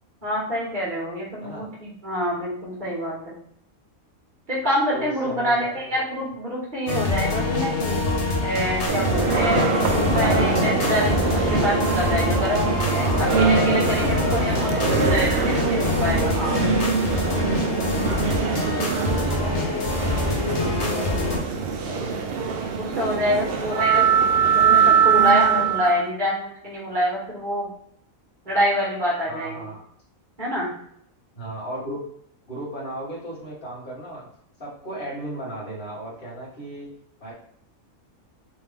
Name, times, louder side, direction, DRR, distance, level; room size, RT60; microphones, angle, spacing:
voice 1, 0.2-3.4 4.5-8.0 8.4-13.0 13.3-14.7 15.1-16.6 22.8-24.2 24.5-27.7 28.5-29.7 30.4-30.7, equal, 35° right, -6 dB, 1.8 m, -26 dB
voice 2, 4.9-6.2 10.0-10.3 12.9-13.4 13.8-15.2 17.9-22.4 23.1-24.0 29.2-29.8 31.3-32.0 32.5-34.3 34.6-36.9 37.2-37.3, right 1 dB, 40° left, -7 dB, 1.8 m, -36 dB
sound 1, 6.9-21.4, left 3 dB, 55° left, 1.1 m, -25 dB
sound 2, 8.9-26.0, right 6 dB, 65° right, 0.6 m, -23 dB
3.5 x 3.4 x 3.4 m, 0.67 s
omnidirectional pair, 1.5 m